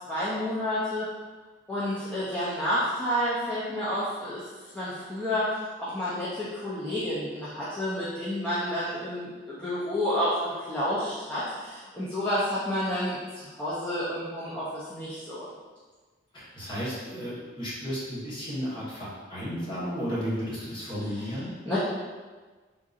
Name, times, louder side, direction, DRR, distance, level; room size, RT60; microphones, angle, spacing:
voice 1, 0.1-1.1 1.7-4.5 4.7-15.5 21.1-21.3 21.6-21.8, left 1 dB, 5° left, -11 dB, 0.5 m, -30 dB
voice 2, 16.3-21.5, equal, 25° left, -10 dB, 1.1 m, -33 dB
3.8 x 2.6 x 2.4 m, 1.4 s
head